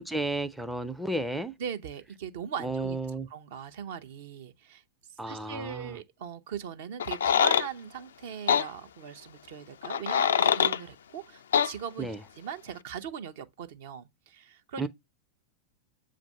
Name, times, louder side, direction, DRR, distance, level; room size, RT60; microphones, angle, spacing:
voice 1, 0.0-1.5 2.6-3.3 5.2-6.0 12.0-12.2 14.8-14.9, right 2 dB, 5° right, 0.5 m, -32 dB
voice 2, 1.6-3.0 3.3-4.8 5.3-12.1 12.4-14.9, right 7 dB, 55° right, 0.7 m, -40 dB
sound 1, 7.0-7.7 8.5-8.7 9.8-10.8 11.5-11.7, left 8 dB, 65° left, 0.3 m, -23 dB
7.4 x 2.5 x 5.4 m
figure-of-eight pair, 90°, 0 cm